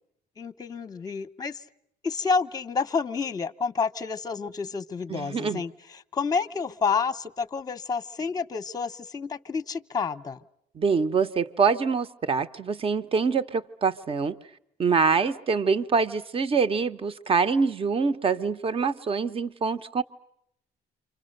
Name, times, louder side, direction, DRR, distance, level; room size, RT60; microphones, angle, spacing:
voice 1, 0.4-1.6 2.0-10.4, left 5 dB, 20° left, 11 dB, 0.9 m, -29 dB
voice 2, 5.1-5.6 10.8-14.3 14.8-20.0, right 5 dB, 35° right, 11 dB, 1.0 m, -25 dB
28.5 x 25.5 x 6.7 m, 0.78 s
cardioid pair, 110°, 17 cm